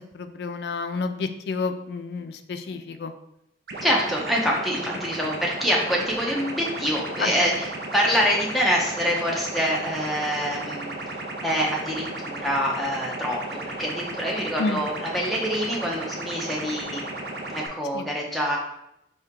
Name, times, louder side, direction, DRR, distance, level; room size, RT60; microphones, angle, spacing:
voice 1, 0.1-3.1 5.2-5.3 7.2-7.3 14.6-14.8 17.9-18.1, left 4 dB, 65° left, 8 dB, 0.4 m, -30 dB
sound 1, 3.7-17.7, right 2 dB, 60° right, 0.6 m, -34 dB
voice 2, 3.8-7.7 7.9-11.0 11.4-17.1 17.5-18.6, equal, ahead, -3 dB, 0.7 m, -25 dB
4.4 x 2.8 x 3.6 m, 0.80 s
head